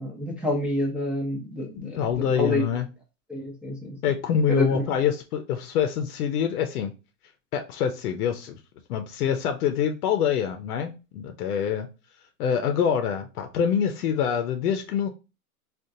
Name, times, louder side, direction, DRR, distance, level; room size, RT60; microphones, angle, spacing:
voice 1, 0.0-2.6 3.3-4.0 4.5-4.8, left 1 dB, ahead, 0.6 m, -28 dB
voice 2, 1.7-2.9 4.0-6.9 7.5-8.6 8.9-11.9 12.4-15.1, left 8 dB, 70° left, 0.7 m, -25 dB
3.6 x 2.4 x 2.6 m
hypercardioid pair, 120°, 46 cm